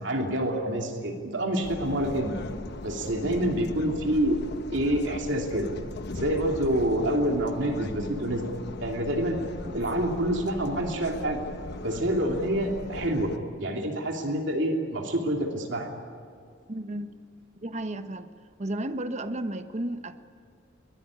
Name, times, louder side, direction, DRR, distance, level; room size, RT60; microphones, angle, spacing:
voice 1, 0.0-2.4 2.8-4.4 4.7-5.7 6.1-8.5 8.8-11.4 11.8-13.3 13.6-15.9, right 1 dB, 70° right, 2 dB, 2.9 m, -27 dB
sound 1, 1.6-13.4, left 2 dB, 60° left, 1.1 m, -39 dB
voice 2, 16.7-17.2 17.6-18.3 18.6-20.2, right 1 dB, 40° right, 10 dB, 1.1 m, -33 dB
22.5 x 20.0 x 9.9 m, 2.3 s
head